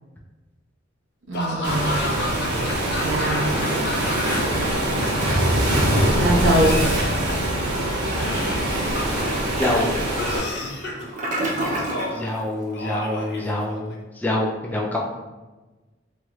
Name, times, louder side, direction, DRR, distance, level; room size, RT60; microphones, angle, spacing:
Laughter / Cough, 1.3-4.6 4.9-5.8 6.5-7.6 8.2-9.4 10.1-11.1 11.7-12.3 12.7-13.9, left 1 dB, 60° left, 0.5 m, -31 dB
voice 1, 1.3-2.0 3.0-3.7 6.1-6.9, right 1 dB, 90° right, -3 dB, 0.7 m, -23 dB
Waves surf, 1.6-10.4, right 1 dB, 60° right, 1.0 m, -23 dB
Toilet flush, 8.7-12.2, right 1 dB, 45° right, 0.6 m, -30 dB
voice 2, 9.6-10.0 12.1-15.0, left 1 dB, 10° left, -3 dB, 0.3 m, -25 dB
3.1 x 3.0 x 2.3 m, 1.2 s
head